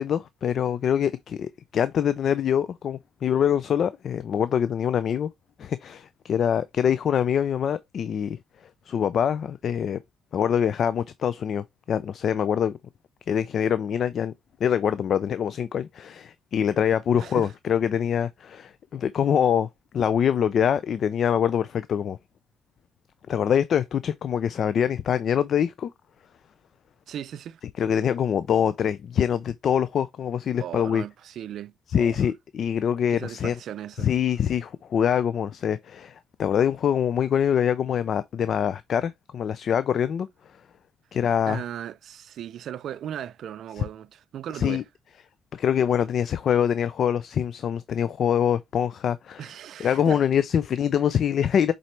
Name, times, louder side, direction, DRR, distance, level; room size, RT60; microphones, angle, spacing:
voice 1, 0.0-5.3 5.6-8.4 8.9-10.0 10.3-12.8 13.3-14.3 14.6-19.7 19.9-22.2 23.3-25.9 27.8-31.0 31.9-33.5 34.0-40.3 41.1-41.6 43.8-43.9 44.5-44.8 45.5-49.4 49.8-51.7, left 8 dB, 60° left, 0.4 m, -24 dB
voice 2, 17.1-17.5 27.1-27.6 30.6-32.2 33.1-34.1 41.5-44.8 49.4-50.2, right 10 dB, 70° right, 0.4 m, -37 dB
7.3 x 4.1 x 3.2 m
cardioid pair, 90°, 0 cm